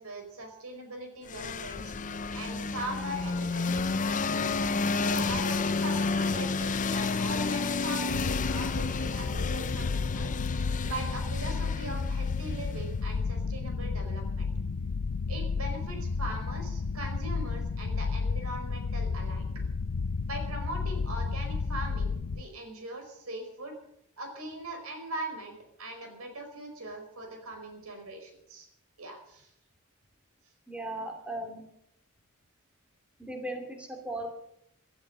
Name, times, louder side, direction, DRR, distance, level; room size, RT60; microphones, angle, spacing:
voice 1, 0.0-1.9 2.3-4.6 4.9-10.3 10.8-14.5 15.3-19.4 20.3-23.7 24.2-28.7 29.0-29.5, right 1 dB, 85° right, 5 dB, 4.9 m, -40 dB
sound 1, 1.3-13.0, left 4 dB, 35° left, 0.6 m, -31 dB
sound 2, 8.1-22.4, left 4 dB, 90° left, 0.6 m, -32 dB
voice 2, 30.7-31.6 33.2-34.3, right 1 dB, 5° right, 3 dB, 2.6 m, -37 dB
16.0 x 13.0 x 6.7 m, 0.75 s
head